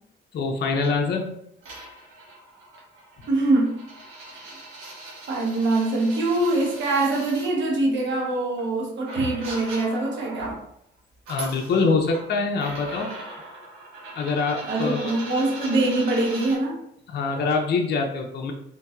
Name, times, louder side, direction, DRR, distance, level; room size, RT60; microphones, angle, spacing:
voice 1, 0.3-1.3 9.2-9.3 11.3-13.1 14.1-15.1 17.1-18.5, left 4 dB, 55° left, 1 dB, 0.6 m, -24 dB
sound 1, 0.8-1.0 1.6-7.5 8.6-8.7 9.1-10.6 11.1-12.3 12.6-16.6, right 2 dB, 85° right, 1.2 m, -40 dB
voice 2, 3.3-3.8 4.3-4.5 5.3-10.6 14.6-16.8, right 2 dB, 70° right, -1 dB, 0.9 m, -24 dB
3.7 x 2.8 x 2.3 m, 0.73 s
cardioid pair, 90°, 20 cm